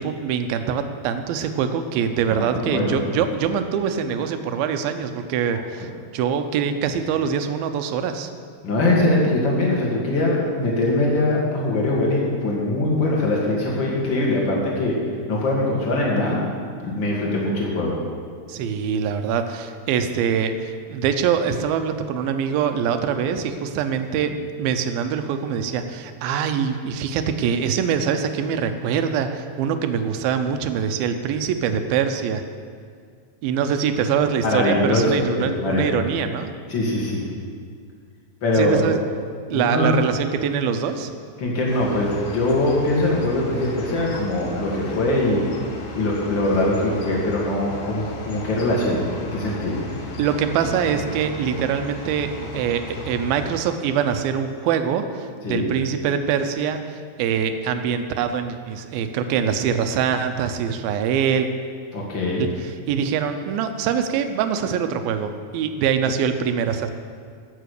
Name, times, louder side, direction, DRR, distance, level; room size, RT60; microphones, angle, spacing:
voice 1, 0.0-8.3 18.5-24.3 24.6-32.4 33.4-36.5 38.6-39.0 39.5-41.1 50.2-61.5 62.4-66.9, right 7 dB, 85° right, 8 dB, 2.6 m, -24 dB
voice 2, 2.3-3.0 8.6-15.0 15.3-16.4 16.8-18.0 34.4-35.9 36.7-37.2 38.4-38.8 39.5-39.9 41.4-45.4 45.9-49.8 55.4-55.7 61.9-62.5, left 2 dB, 35° left, -3 dB, 2.7 m, -22 dB
sound 1, 41.7-53.5, left 1 dB, 85° left, 3.4 m, -35 dB
16.0 x 6.9 x 6.6 m, 2.1 s
omnidirectional pair, 4.2 m